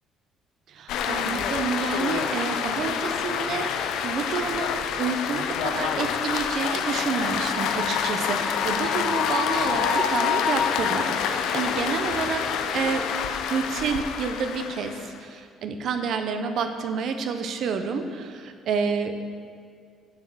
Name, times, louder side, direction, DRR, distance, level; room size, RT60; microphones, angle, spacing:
voice 1, 0.7-3.7 4.0-12.4 12.7-13.1 13.5-19.1, right 5 dB, 55° right, 7 dB, 0.7 m, -29 dB
sound 1, 0.9-15.2, left 7 dB, 75° left, 0.6 m, -27 dB
7.2 x 6.3 x 7.7 m, 2.1 s
cardioid pair, 160°, 0 cm